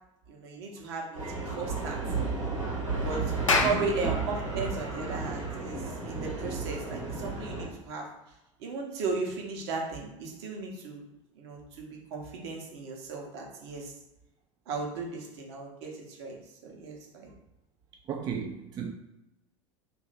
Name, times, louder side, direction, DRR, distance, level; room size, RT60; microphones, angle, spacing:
voice 1, 0.3-2.3 3.0-3.2 3.6-8.0 8.6-11.0 11.4-13.9 14.7-16.4 16.6-17.3, right 4 dB, 55° right, 0 dB, 0.9 m, -36 dB
sound 1, 1.1-7.7, right 3 dB, 85° right, 1.2 m, -33 dB
Clapping, 3.3-8.1, left 3 dB, 80° left, 0.5 m, -33 dB
voice 2, 3.4-3.8 18.1-18.9, right 7 dB, 25° right, 2 dB, 0.3 m, -34 dB
2.8 x 2.5 x 4.0 m, 0.93 s
figure-of-eight pair, 75°, 16 cm